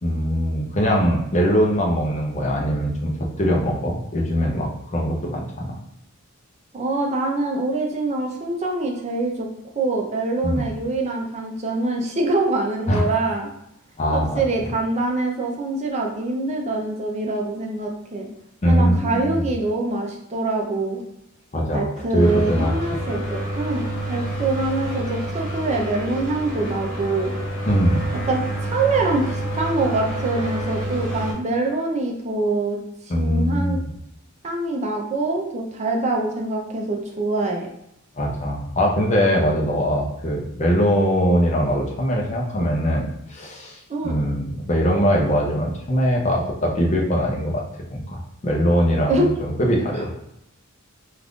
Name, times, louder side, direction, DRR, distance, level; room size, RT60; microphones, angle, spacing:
voice 1, 0.0-3.1 3.4-5.7 10.4-10.6 12.9-13.0 14.0-14.4 18.6-19.5 21.5-21.9 22.1-23.0 27.7-28.1 33.1-33.9 38.2-43.8 44.0-47.6 47.9-50.1, equal, 35° left, -1 dB, 0.5 m, -21 dB
voice 2, 6.7-9.5 9.8-13.5 14.1-18.3 18.6-21.0 21.7-27.3 28.3-32.8 33.2-33.8 34.4-37.7 43.9-44.2 49.1-49.3 49.9-50.2, right 2 dB, 30° right, 1 dB, 0.5 m, -24 dB
sound 1, 22.2-31.3, right 1 dB, 65° left, 1.0 m, -28 dB
2.4 x 2.4 x 3.5 m, 0.81 s
head